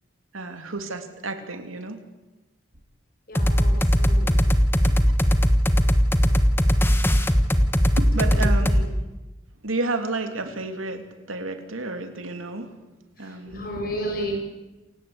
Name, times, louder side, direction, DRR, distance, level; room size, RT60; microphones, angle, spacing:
voice 1, 0.3-2.0 4.8-4.9 7.9-8.7 9.6-12.7 13.2-13.6, right 2 dB, 90° right, 7 dB, 2.9 m, -31 dB
voice 2, 3.3-4.4 8.2-8.9 13.2-14.3, equal, 45° left, 2 dB, 7.5 m, -33 dB
sound 1, 3.3-8.8, equal, 10° left, 1.3 m, -19 dB
28.0 x 16.5 x 8.7 m, 1.1 s
head